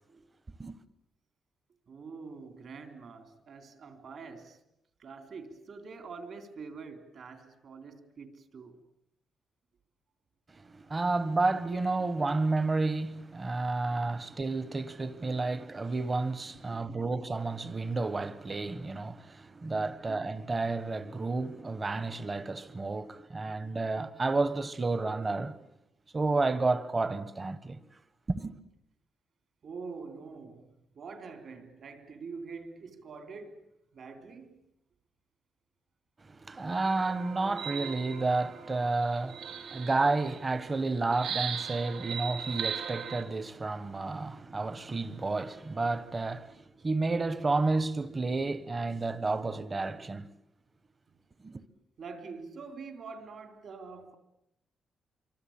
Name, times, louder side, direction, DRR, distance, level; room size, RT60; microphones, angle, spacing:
voice 1, 1.9-4.6 5.0-8.8 16.7-16.9 29.6-30.7 30.9-34.6 52.0-54.2, right 4 dB, 50° right, 3.7 m, -45 dB
voice 2, 10.6-25.6 26.1-27.8 28.3-28.6 36.3-50.3 51.4-51.6, right 3 dB, 20° right, 1.3 m, -31 dB
sound 1, 36.8-40.5 41.1-43.2, right 7 dB, 75° right, 3.1 m, -38 dB
26.5 x 24.5 x 8.9 m
wide cardioid pair, 170°, 0 cm